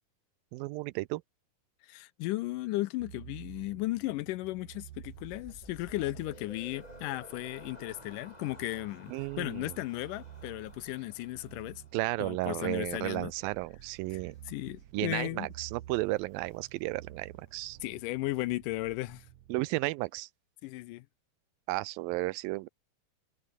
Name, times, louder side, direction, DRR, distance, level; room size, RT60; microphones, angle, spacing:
voice 1, 0.5-1.2 9.1-9.7 11.9-14.4 14.9-17.8 19.5-20.3 21.7-22.7, right 20 dB, 85° right, 2.4 m, -33 dB
voice 2, 1.8-9.1 9.4-11.8 12.2-13.3 14.1-14.2 14.5-15.5 17.8-19.3 20.6-21.1, left 18 dB, 80° left, 2.0 m, -35 dB
sound 1, 3.0-19.5, right 13 dB, 65° right, 1.8 m, -52 dB
sound 2, 5.0-12.4, left 1 dB, 10° left, 4.9 m, -53 dB
sound 3, 5.1-18.0, left 5 dB, 60° left, 5.8 m, -67 dB
omnidirectional pair, 4.1 m